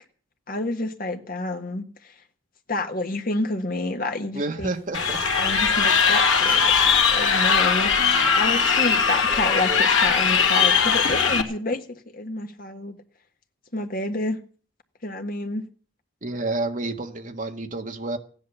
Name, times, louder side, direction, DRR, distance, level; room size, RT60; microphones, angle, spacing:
voice 1, 0.5-1.8 2.7-4.8 5.4-13.0 13.7-14.4 15.0-15.7, left 2 dB, 45° left, 1.5 m, -29 dB
voice 2, 4.3-5.2 16.2-18.2, right 2 dB, 40° right, 1.5 m, -29 dB
sound 1, 4.7-7.5 7.8-8.2 8.5-10.2, right 1 dB, 15° right, 7.6 m, -42 dB
Crowd, 4.9-11.4, left 6 dB, 75° left, 2.2 m, -20 dB
15.5 x 10.5 x 7.1 m
head